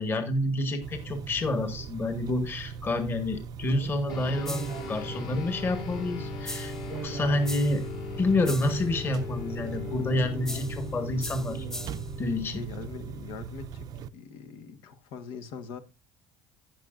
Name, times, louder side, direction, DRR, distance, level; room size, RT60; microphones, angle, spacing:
voice 1, 0.0-7.8 8.2-11.7 12.2-12.6, left 2 dB, 30° left, 1.6 m, -28 dB
sound 1, 0.8-14.1, right 7 dB, 50° right, 0.5 m, -39 dB
sound 2, 4.1-13.8, left 6 dB, 60° left, 3.1 m, -40 dB
sound 3, 4.4-4.9 6.4-6.9 7.4-7.9 8.4-8.9 10.4-10.9 11.2-12.1, left 1 dB, 5° left, 0.5 m, -40 dB
voice 2, 12.5-13.9 14.1-15.8, left 5 dB, 80° left, 1.4 m, -42 dB
18.0 x 6.2 x 2.5 m
cardioid pair, 140°, 8 cm